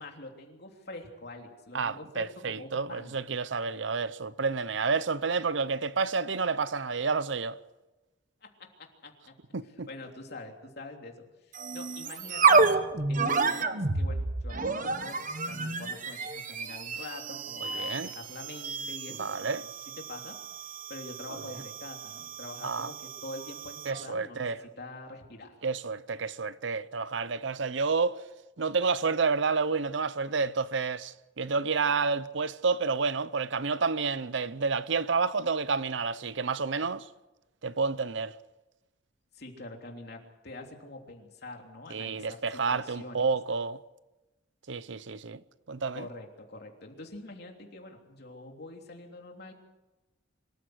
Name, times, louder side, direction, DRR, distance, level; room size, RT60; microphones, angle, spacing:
voice 1, 0.0-3.2 8.4-9.4 9.9-12.7 13.1-19.6 20.0-20.4 20.9-24.5 24.8-25.5 39.3-43.2 45.9-49.5, left 2 dB, 55° left, 3.3 m, -45 dB
voice 2, 1.7-7.6 9.5-9.9 17.6-18.1 19.2-19.6 21.3-21.4 22.6-22.9 23.8-24.6 25.6-28.2 28.6-37.1 37.6-38.4 41.9-43.8 44.7-45.4 45.7-46.1, right 4 dB, 65° right, 0.7 m, -30 dB
sound 1, 11.5-24.0, right 4 dB, 45° right, 1.2 m, -30 dB
25.0 x 14.5 x 7.9 m
head